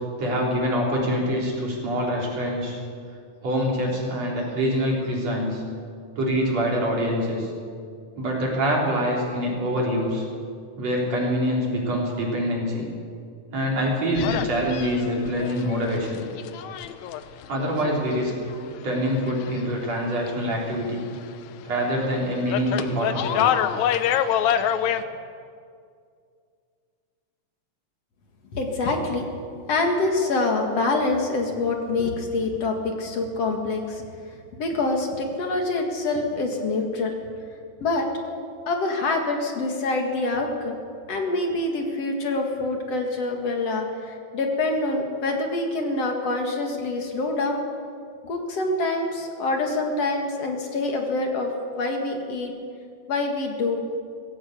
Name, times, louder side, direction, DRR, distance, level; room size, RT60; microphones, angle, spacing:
voice 1, 0.2-2.8 3.4-5.6 6.2-7.5 8.2-10.2 10.8-12.8 13.5-16.2 17.5-18.3 18.8-21.0 21.6-23.5, equal, 60° right, -3 dB, 5.2 m, -25 dB
sound 1, 14.1-19.9 20.2-21.5 21.8-25.0, left 10 dB, 80° left, 2.0 m, -27 dB
voice 2, 28.5-34.1 34.6-37.1 37.8-38.1 38.7-40.8 41.1-47.6 48.2-51.5 51.8-52.5 53.1-53.8, left 2 dB, 60° left, 2 dB, 2.8 m, -26 dB
20.0 x 16.0 x 8.2 m, 2.3 s
omnidirectional pair, 3.4 m